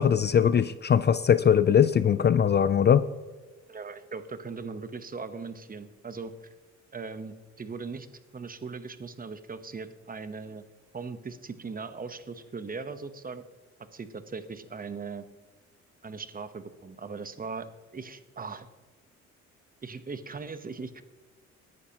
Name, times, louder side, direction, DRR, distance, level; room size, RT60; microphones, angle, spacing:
voice 1, 0.0-3.0, left 8 dB, 35° left, 14 dB, 0.4 m, -21 dB
voice 2, 3.7-6.3 6.9-8.1 8.3-10.6 10.9-13.4 13.9-15.3 16.0-17.7 17.9-18.7 19.8-21.0, right 4 dB, 30° right, 11 dB, 1.0 m, -39 dB
18.5 x 11.0 x 3.0 m, 1.3 s
cardioid pair, 90°, 30 cm